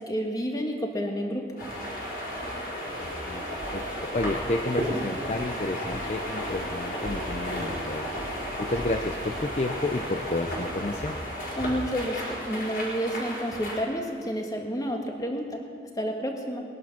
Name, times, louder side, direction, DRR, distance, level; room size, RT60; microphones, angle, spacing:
voice 1, 0.1-1.4 11.6-15.6 16.0-16.6, equal, 20° left, 2 dB, 1.5 m, -30 dB
sound 1, 1.6-13.8, equal, 55° left, 4.5 m, -33 dB
voice 2, 3.7-8.1 8.6-11.2, left 2 dB, 40° left, 5 dB, 0.6 m, -31 dB
21.0 x 10.5 x 5.8 m, 2.3 s
head